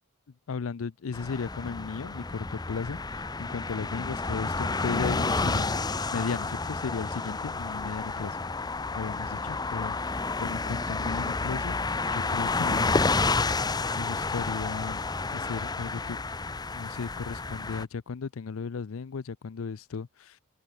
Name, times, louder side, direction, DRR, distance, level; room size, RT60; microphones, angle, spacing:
voice 1, 0.5-8.4 8.9-11.8 12.1-13.2 14.0-15.0 15.3-16.2 16.7-20.4, left 5 dB, 70° left, 0.5 m, -35 dB
sound 1, 1.1-17.8, left 3 dB, 20° left, 0.7 m, -30 dB
head